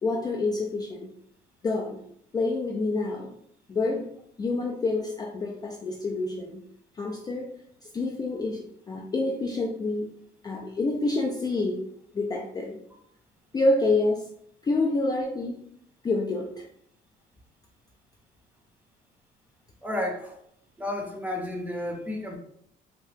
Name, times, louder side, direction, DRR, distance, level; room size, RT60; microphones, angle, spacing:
voice 1, 0.0-1.1 1.6-2.0 2.3-3.3 3.7-4.1 4.4-6.6 7.0-7.5 7.8-10.1 10.4-11.9 12.1-12.8 13.5-14.3 14.6-15.6 16.0-16.6, left 2 dB, 25° left, 0 dB, 0.3 m, -27 dB
voice 2, 19.8-20.4 20.8-22.4, left 1 dB, 10° right, 1 dB, 0.7 m, -32 dB
2.9 x 2.2 x 3.2 m, 0.70 s
cardioid pair, 110°, 17 cm